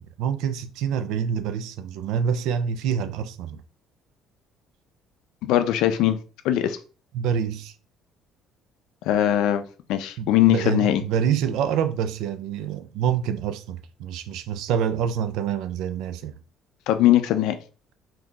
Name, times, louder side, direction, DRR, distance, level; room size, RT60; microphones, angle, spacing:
voice 1, 0.0-3.6 7.1-7.7 10.2-16.4, right 8 dB, 70° right, 0.3 m, -26 dB
voice 2, 5.4-6.2 6.4-6.8 9.1-11.0 16.9-17.6, left 12 dB, 70° left, 0.4 m, -20 dB
3.7 x 2.7 x 2.3 m
cardioid pair, 165°, 0 cm